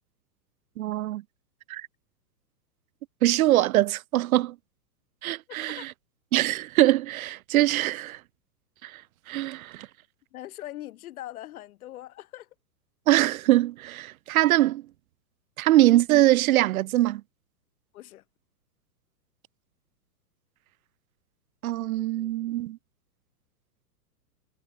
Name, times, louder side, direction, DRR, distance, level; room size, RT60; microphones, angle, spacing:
voice 1, 0.8-1.2 1.7-1.9 3.2-4.5 5.2-5.9 6.3-8.2 8.8-9.0 9.3-9.9 13.1-14.8 15.6-17.2 21.6-22.8, right 15 dB, 60° right, 1.2 m, -23 dB
voice 2, 5.5-5.9 10.3-12.5 17.9-18.2, left 14 dB, 60° left, 2.1 m, -41 dB
hypercardioid pair, 130°, 48 cm